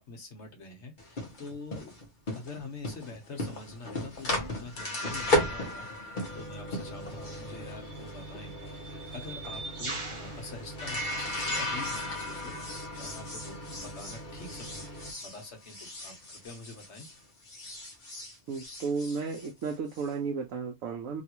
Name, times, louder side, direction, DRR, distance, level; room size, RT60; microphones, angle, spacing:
voice 1, 0.0-2.0 2.3-14.9 15.2-17.1, left 3 dB, 60° left, 1.2 m, -46 dB
sound 1, 1.0-17.2 17.4-20.1, left 1 dB, 40° left, 1.0 m, -35 dB
sound 2, 6.3-6.5 7.5-11.7, right 3 dB, 35° right, 0.5 m, -43 dB
voice 2, 18.5-21.2, right 5 dB, 85° right, 1.1 m, -33 dB
3.3 x 2.4 x 2.9 m
omnidirectional pair, 1.3 m